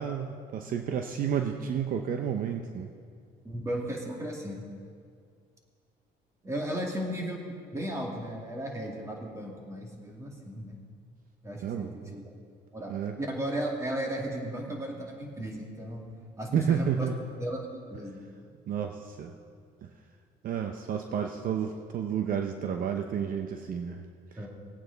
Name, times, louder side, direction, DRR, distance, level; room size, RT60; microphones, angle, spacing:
voice 1, 0.0-2.9 11.6-12.2 12.9-13.2 16.5-17.2 18.7-19.3 19.8-19.9 20.4-24.1, right 8 dB, 55° right, 5 dB, 0.7 m, -31 dB
voice 2, 3.4-4.6 6.4-10.8 11.4-12.3 12.7-16.0 16.4-17.1 17.4-18.2 24.4-24.5, right 1 dB, 15° right, -1 dB, 2.3 m, -35 dB
19.0 x 8.9 x 4.0 m, 2.2 s
cardioid pair, 110°, 17 cm